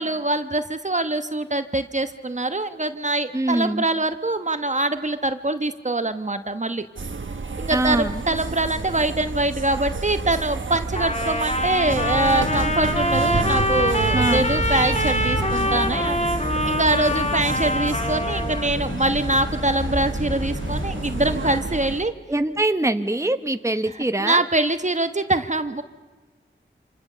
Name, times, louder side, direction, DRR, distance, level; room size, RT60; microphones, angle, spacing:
voice 1, 0.0-6.9 7.6-16.2 16.6-22.1 24.2-25.8, right 2 dB, 35° right, 9 dB, 1.1 m, -24 dB
voice 2, 3.3-3.8 7.7-8.2 14.1-14.5 22.3-24.4, right 1 dB, 15° right, 8 dB, 1.1 m, -23 dB
sound 1, 7.0-22.0, right 4 dB, 75° right, 1.3 m, -31 dB
Trumpet, 10.9-18.7, left 1 dB, 35° left, 2.1 m, -24 dB
sound 2, 11.8-21.6, left 1 dB, 80° left, 5.1 m, -31 dB
26.5 x 26.5 x 6.8 m, 1.3 s
wide cardioid pair, 50°, 20 cm